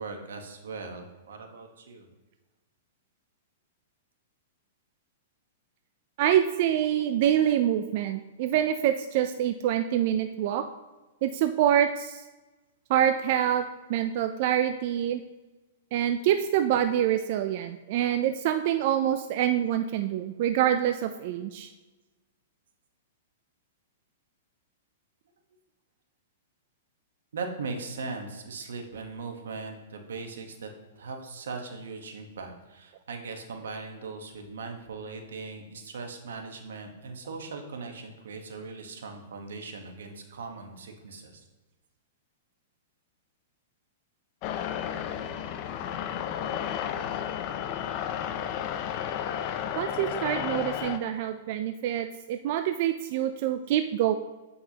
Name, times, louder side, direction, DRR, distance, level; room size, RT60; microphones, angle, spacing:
voice 1, 0.0-2.1 27.3-30.7 31.0-41.4, right 4 dB, 85° right, 4 dB, 1.1 m, -39 dB
voice 2, 6.2-10.6 11.2-12.2 12.9-13.6 13.9-15.2 15.9-21.7 49.7-54.1, right 10 dB, 50° right, 8 dB, 0.3 m, -26 dB
sound 1, 44.4-51.0, left 9 dB, 40° left, 0.5 m, -32 dB
8.1 x 5.4 x 2.9 m, 1.1 s
hypercardioid pair, 145°, 0 cm